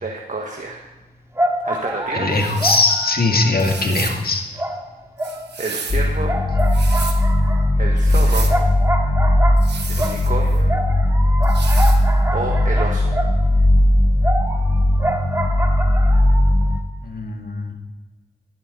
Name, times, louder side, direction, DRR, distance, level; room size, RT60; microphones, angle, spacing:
voice 1, 0.0-0.8 1.6-2.4 5.6-6.3 7.8-8.5 9.8-10.7 12.3-13.1, right 3 dB, 50° right, 0 dB, 1.5 m, -28 dB
sound 1, 0.7-0.8 1.3-4.2 4.5-5.9 6.3-13.7 14.2-16.8, right 1 dB, 15° right, 2.0 m, -27 dB
voice 2, 2.1-4.4 17.0-17.7, left 3 dB, 60° left, 2 dB, 1.9 m, -20 dB
sound 2, 2.3-2.9 3.6-4.2 5.2-6.1 6.6-7.2 8.0-8.6 9.6-10.6 11.4-12.0, right 5 dB, 80° right, 1.2 m, -32 dB
sound 3, 5.9-16.8, left 1 dB, 40° left, 0.8 m, -17 dB
11.5 x 11.0 x 3.9 m, 1.2 s
cardioid pair, 45°, 17 cm